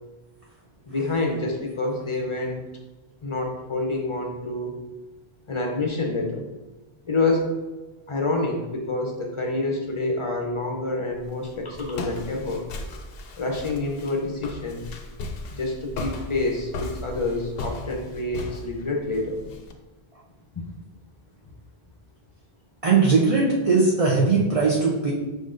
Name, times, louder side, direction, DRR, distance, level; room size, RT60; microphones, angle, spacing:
voice 1, 0.9-2.6 3.2-4.7 5.5-6.5 7.1-7.6 8.1-12.7 13.4-14.8 15.6-19.4, left 2 dB, 35° left, 1 dB, 0.5 m, -27 dB
Walk footsteps, 11.1-19.7, left 2 dB, 70° left, 0.8 m, -36 dB
voice 2, 22.8-25.1, right 4 dB, 40° right, -4 dB, 0.7 m, -19 dB
5.0 x 4.0 x 2.5 m, 1.2 s
omnidirectional pair, 1.0 m